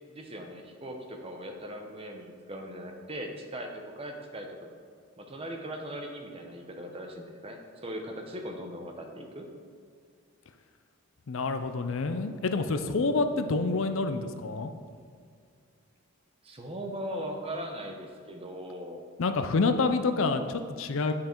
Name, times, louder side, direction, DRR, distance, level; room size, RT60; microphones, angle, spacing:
voice 1, 0.1-4.7 5.2-9.5 16.4-19.0, equal, 25° right, 3 dB, 0.8 m, -39 dB
voice 2, 11.3-14.7 19.2-21.1, left 3 dB, 60° left, 9 dB, 0.5 m, -27 dB
8.9 x 5.7 x 4.5 m, 2.2 s
head